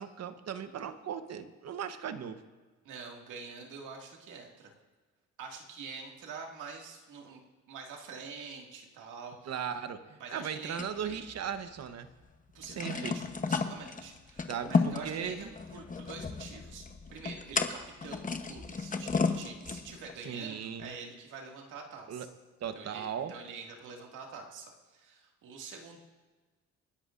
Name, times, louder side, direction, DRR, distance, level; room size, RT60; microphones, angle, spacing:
voice 1, 0.0-2.4 9.5-12.1 12.6-13.2 14.5-15.5 20.2-20.9 22.1-22.3 22.6-23.3, right 8 dB, 55° right, 10 dB, 1.1 m, -37 dB
voice 2, 2.8-4.7 5.4-7.4 7.7-9.5 10.2-11.1 12.5-22.3 22.7-26.0, right 5 dB, 85° right, 1 dB, 2.2 m, -46 dB
sound 1, 10.8-11.9 12.2-12.3 12.6-20.1, left 4 dB, 25° left, 1.0 m, -33 dB
27.5 x 11.0 x 2.6 m, 1.3 s
cardioid pair, 90°, 30 cm